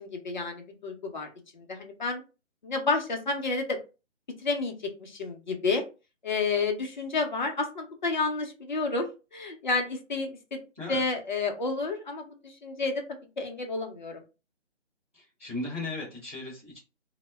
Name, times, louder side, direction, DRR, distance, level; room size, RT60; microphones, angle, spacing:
voice 1, 0.0-2.2 2.6-3.8 4.4-5.8 6.2-10.6 10.9-14.2, left 3 dB, 40° left, 4 dB, 0.5 m, -30 dB
voice 2, 15.1-16.8, left 2 dB, 10° right, -10 dB, 0.5 m, -36 dB
2.0 x 2.0 x 3.2 m, 0.30 s
hypercardioid pair, 160°, 37 cm